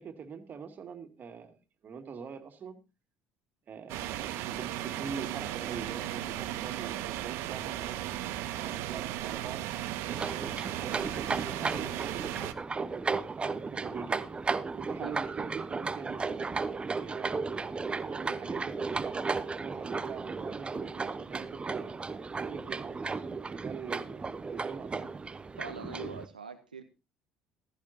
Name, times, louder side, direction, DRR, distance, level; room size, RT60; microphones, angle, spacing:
voice 1, 0.0-1.6 1.8-2.8 3.7-8.0 8.5-9.6 10.1-12.3 12.7-14.3 14.8-17.7 18.1-22.0 22.4-25.1, right 6 dB, 45° right, 6 dB, 2.4 m, -44 dB
sound 1, 3.9-12.5, right 13 dB, 65° right, 1.0 m, -36 dB
sound 2, 10.1-26.3, right 4 dB, 25° right, 0.9 m, -35 dB
voice 2, 25.6-26.8, right 5 dB, 90° right, 8 dB, 0.8 m, -43 dB
15.0 x 13.5 x 2.8 m, 0.28 s
figure-of-eight pair, 55°, 4 cm